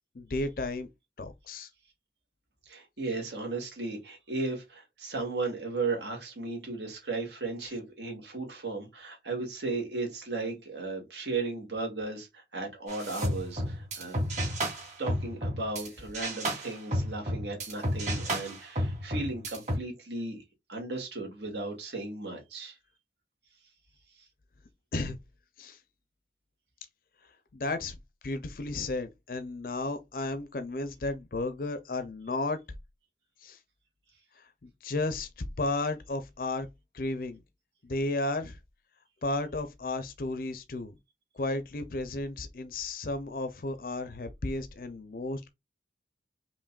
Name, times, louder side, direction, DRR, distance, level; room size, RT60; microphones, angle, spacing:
voice 1, 0.1-0.9 1.2-1.7 7.6-7.7 24.9-25.2 25.6-25.8 27.5-27.9 28.2-32.6 33.4-33.6 34.4-36.7 36.9-37.4 37.8-38.6 39.2-40.9 41.3-45.5, left 2 dB, 50° left, 0.5 m, -33 dB
voice 2, 2.7-14.2 15.0-20.4 20.7-22.8, right 3 dB, 75° right, 2.1 m, -35 dB
sound 1, 12.9-15.9 16.1-19.8, equal, 40° right, 2.3 m, -32 dB
5.1 x 3.0 x 2.3 m
head